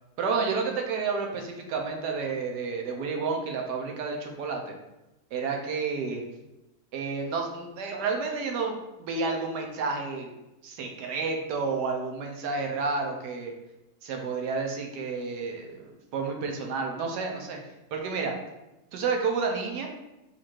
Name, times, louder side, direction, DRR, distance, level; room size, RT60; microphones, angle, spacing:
voice 1, 0.2-4.8 5.3-6.2 6.9-10.3 10.6-13.5 14.0-17.6 17.9-18.3 18.9-19.9, right 4 dB, 80° right, 2 dB, 1.3 m, -30 dB
4.3 x 2.5 x 4.4 m, 0.97 s
omnidirectional pair, 1.8 m